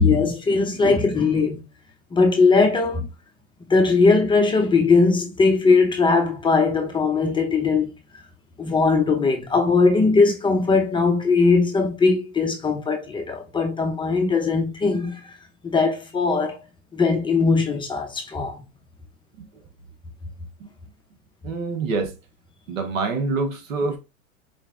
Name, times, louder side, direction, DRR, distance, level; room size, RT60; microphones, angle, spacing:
voice 1, 0.0-1.6 2.1-3.1 3.7-7.9 8.6-15.3 15.6-16.6 16.9-18.6, left 4 dB, 10° left, 0.6 m, -20 dB
voice 2, 21.4-22.2 22.7-24.0, right 3 dB, 80° right, 1.1 m, -26 dB
4.3 x 3.0 x 2.5 m
hypercardioid pair, 115°, 40 cm